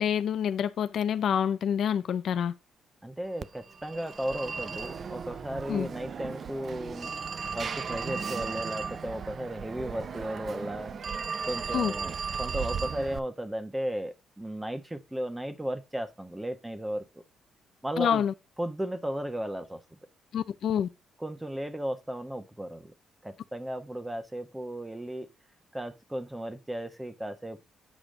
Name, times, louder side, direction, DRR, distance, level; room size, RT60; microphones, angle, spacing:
voice 1, 0.0-2.5 5.7-5.9 11.7-11.9 18.0-18.3 20.3-20.9, left 8 dB, 65° left, 0.5 m, -27 dB
voice 2, 3.0-7.1 7.5-11.0 11.5-17.2 17.8-18.2 18.6-20.0 21.2-22.9 23.2-25.3 25.7-27.6, right 1 dB, 10° right, 1.2 m, -35 dB
Telephone, 3.4-13.2, right 6 dB, 45° right, 0.6 m, -36 dB
8.5 x 5.0 x 3.8 m
cardioid pair, 90°, 0 cm